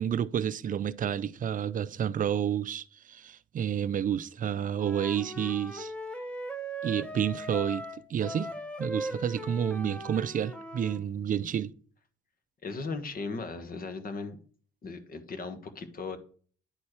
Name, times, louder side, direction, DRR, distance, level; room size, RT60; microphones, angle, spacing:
voice 1, 0.0-5.9 6.8-8.5 8.8-11.7, right 9 dB, 45° right, 0.5 m, -30 dB
Wind instrument woodwind instrument, 4.8-11.0, right 1 dB, 5° left, 1.0 m, -39 dB
voice 2, 12.6-14.4 14.8-16.2, left 4 dB, 45° left, 1.4 m, -37 dB
10.5 x 4.3 x 4.8 m
cardioid pair, 90°, 20 cm